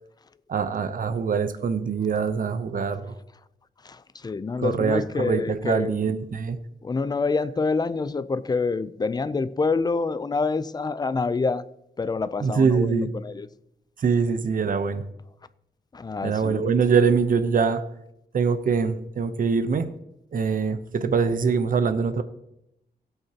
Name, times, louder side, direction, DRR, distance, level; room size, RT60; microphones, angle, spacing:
voice 1, 0.5-3.1 4.6-6.6 12.4-13.1 14.0-15.0 16.2-17.8 18.3-19.9 20.3-22.2, right 5 dB, 55° right, 0.8 m, -23 dB
voice 2, 3.8-6.0 6.8-11.6 12.0-13.5 15.9-16.7, left 4 dB, 25° left, 0.4 m, -27 dB
17.0 x 8.0 x 2.9 m
wide cardioid pair, 140°, 17 cm